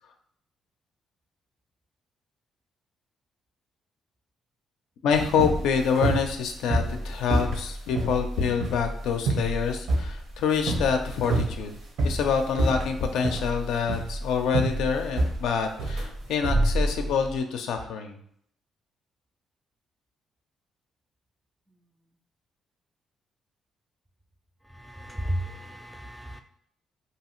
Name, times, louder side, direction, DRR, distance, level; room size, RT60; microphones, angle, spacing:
voice 1, 5.0-11.8 12.0-18.2, left 6 dB, 85° left, 5 dB, 0.4 m, -26 dB
sound 1, 5.1-17.3, right 2 dB, 70° right, 0.8 m, -28 dB
voice 2, 24.9-26.4, equal, ahead, 6 dB, 0.3 m, -33 dB
2.7 x 2.4 x 2.9 m, 0.64 s
cardioid pair, 90°, 0 cm